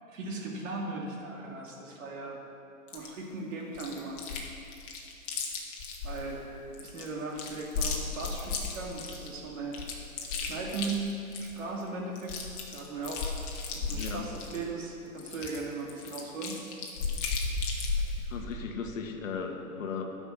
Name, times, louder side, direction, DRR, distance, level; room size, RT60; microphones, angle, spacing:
voice 1, 0.1-2.4 2.9-4.2 6.0-9.7 10.4-11.0 11.4-16.6, right 3 dB, 60° right, -1 dB, 2.4 m, -38 dB
Chewing mastication, 2.9-3.1 3.7-4.5 4.7-6.2 6.7-9.3 9.7-11.6 11.9-12.0 12.2-14.6 15.2-18.2, left 4 dB, 35° left, 1.5 m, -34 dB
voice 2, 13.9-14.3 18.2-20.0, left 5 dB, 65° left, 3 dB, 1.3 m, -36 dB
10.5 x 6.0 x 7.2 m, 2.7 s
hypercardioid pair, 140°, 43 cm